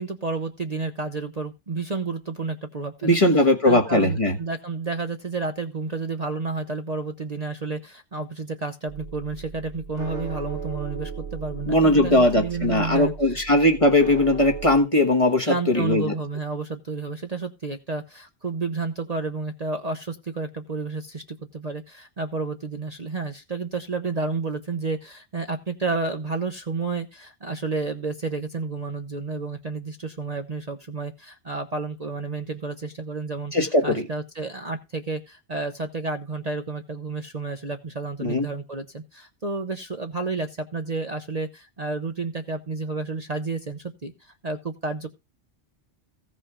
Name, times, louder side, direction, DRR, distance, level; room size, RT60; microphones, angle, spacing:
voice 1, 0.0-3.2 3.7-13.4 15.4-33.5 33.8-45.1, right 3 dB, 35° right, 6 dB, 0.9 m, -31 dB
voice 2, 3.0-4.4 11.7-16.1 33.5-34.0 38.2-38.5, left 1 dB, 30° left, 4 dB, 1.5 m, -19 dB
sound 1, 8.9-14.8, right 6 dB, 80° right, 2.2 m, -37 dB
15.5 x 5.4 x 4.9 m, 0.25 s
omnidirectional pair, 1.2 m